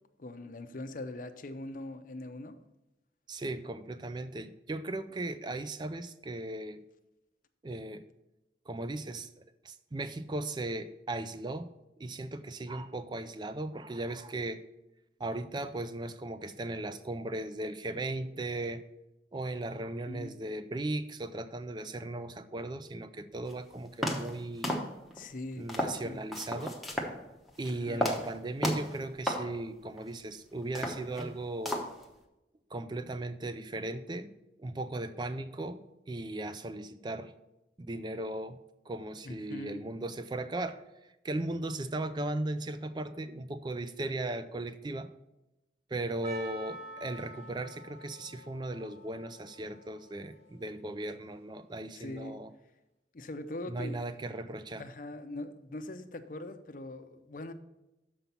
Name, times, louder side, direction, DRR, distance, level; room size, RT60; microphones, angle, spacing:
voice 1, 0.2-2.6 20.1-20.3 25.1-26.2 27.7-28.0 39.2-39.8 51.9-52.4 53.1-54.0 54.7-57.5, left 2 dB, 50° left, 9 dB, 0.6 m, -42 dB
voice 2, 3.3-6.8 7.6-8.0 8.7-9.3 9.6-11.7 12.0-14.6 15.2-18.8 19.3-24.8 25.6-26.8 27.6-31.9 32.7-34.3 34.6-37.3 37.8-38.6 38.9-40.8 41.2-45.1 45.9-52.5 53.7-54.8, right 2 dB, 25° right, 11 dB, 0.4 m, -37 dB
sound 1, 23.5-23.6 24.0-24.4 24.6-25.2 25.7-26.0 26.3-27.1 27.5-27.7 28.0-28.3 28.6-29.0 29.3-29.5 30.0-30.1 30.6-31.4 31.6-32.0, equal, ahead, 0.9 m, -33 dB
Percussion, 46.2-51.2, right 1 dB, 40° right, 1.0 m, -48 dB
6.9 x 5.4 x 5.8 m, 0.95 s
head